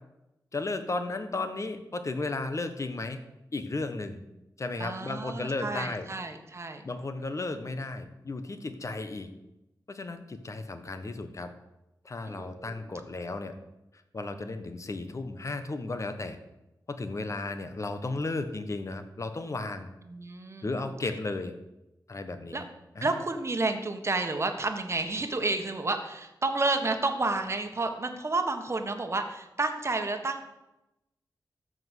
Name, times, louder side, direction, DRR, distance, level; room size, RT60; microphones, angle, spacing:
voice 1, 0.5-3.2 3.5-4.2 4.6-6.1 6.8-9.3 9.9-11.5 12.0-13.5 14.1-16.4 16.9-19.9 20.6-21.6 22.1-22.6 22.9-23.2, left 2 dB, 45° left, 8 dB, 1.2 m, -34 dB
voice 2, 4.8-6.8 12.2-12.8 20.1-20.8 22.5-22.6 23.0-30.4, right 3 dB, 40° right, 5 dB, 1.4 m, -30 dB
13.5 x 5.2 x 8.1 m, 0.94 s
wide cardioid pair, 100°, 7 cm